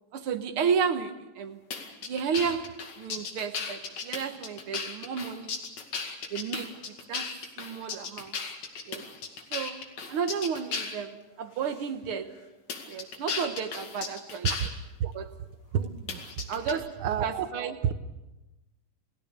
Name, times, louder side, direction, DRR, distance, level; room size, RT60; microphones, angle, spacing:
voice 1, 0.1-1.6 2.0-5.6 6.3-8.4 8.8-9.0 9.5-12.4 12.9-14.5 15.1-15.3 16.5-17.8, right 6 dB, 60° right, 1.6 m, -32 dB
sound 1, 1.7-11.0 11.7-11.8 12.7-14.7 16.1-16.7, left 5 dB, 60° left, 3.4 m, -35 dB
voice 2, 15.7-16.2 17.0-17.5 17.8-17.9, right 9 dB, 80° right, 1.1 m, -29 dB
29.0 x 18.5 x 6.8 m
omnidirectional pair, 3.7 m